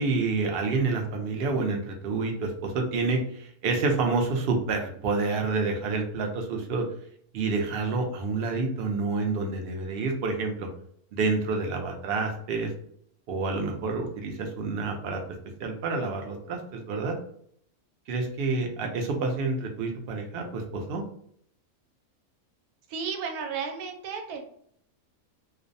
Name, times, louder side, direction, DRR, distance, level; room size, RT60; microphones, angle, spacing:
voice 1, 0.0-6.9 7.3-10.7 11.1-12.7 13.3-15.2 15.6-17.2 18.1-21.0, right 3 dB, 70° right, 2 dB, 0.5 m, -28 dB
voice 2, 22.9-24.4, right 6 dB, 85° right, 4 dB, 1.1 m, -33 dB
2.5 x 2.0 x 2.5 m, 0.65 s
omnidirectional pair, 1.5 m